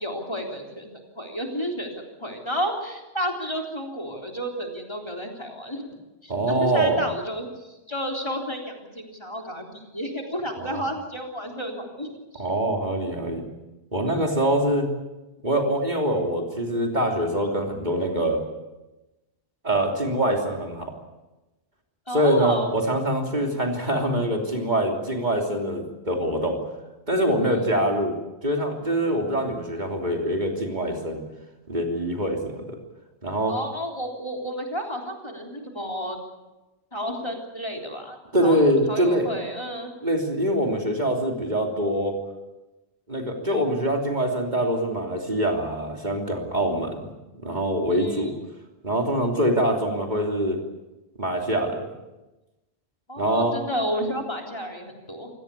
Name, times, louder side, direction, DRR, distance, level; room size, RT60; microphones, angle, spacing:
voice 1, 0.0-1.9 2.2-5.9 6.2-12.4 14.1-14.2 22.1-22.7 33.5-36.2 36.9-39.9 47.9-48.3 53.1-55.3, equal, 25° left, 1 dB, 3.8 m, -31 dB
voice 2, 6.3-7.1 10.6-10.8 12.3-13.4 13.9-14.9 15.4-18.4 19.6-20.9 22.1-26.6 27.1-28.1 28.4-31.2 31.7-32.8 33.2-33.5 38.3-39.3 40.0-42.2 43.1-47.1 47.4-48.3 48.8-50.6 51.2-51.8 53.2-53.5, right 1 dB, 45° right, 2 dB, 3.3 m, -24 dB
27.5 x 17.5 x 8.4 m, 1.1 s
omnidirectional pair, 1.1 m